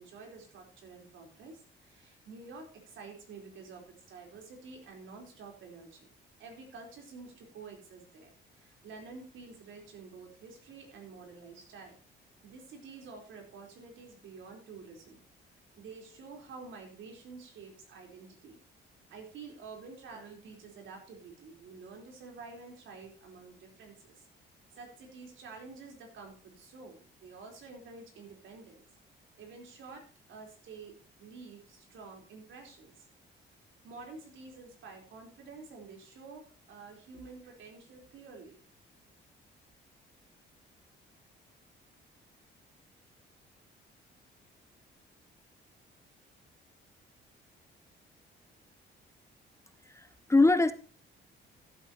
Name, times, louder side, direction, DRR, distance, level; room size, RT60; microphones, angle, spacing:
voice 1, 0.0-6.1 6.4-12.0 12.4-15.2 15.8-18.6 19.1-24.3 24.7-28.8 29.4-33.1 33.8-38.6, right 4 dB, 75° right, 2 dB, 3.9 m, -49 dB
voice 2, 49.9-50.7, left 2 dB, 15° left, 12 dB, 0.7 m, -23 dB
15.0 x 8.4 x 2.9 m, 0.38 s
cardioid pair, 90°, 20 cm